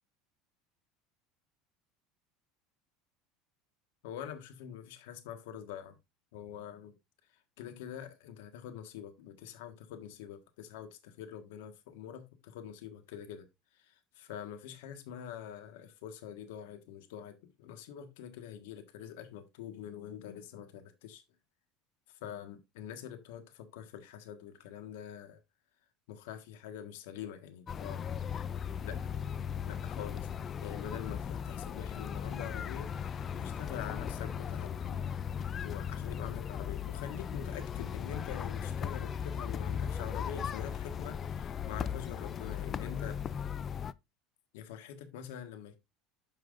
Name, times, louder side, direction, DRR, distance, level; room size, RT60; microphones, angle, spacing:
voice 1, 4.0-6.0 6.3-6.9 7.6-13.5 13.7-21.2 22.2-25.4 26.1-28.0 28.8-29.0 29.7-35.1 35.6-43.2 44.5-45.8, left 9 dB, 85° left, 1.4 m, -45 dB
sound 1, 27.7-43.9, left 8 dB, 35° left, 0.4 m, -37 dB
8.9 x 5.8 x 2.5 m
supercardioid pair, 115°, 0 cm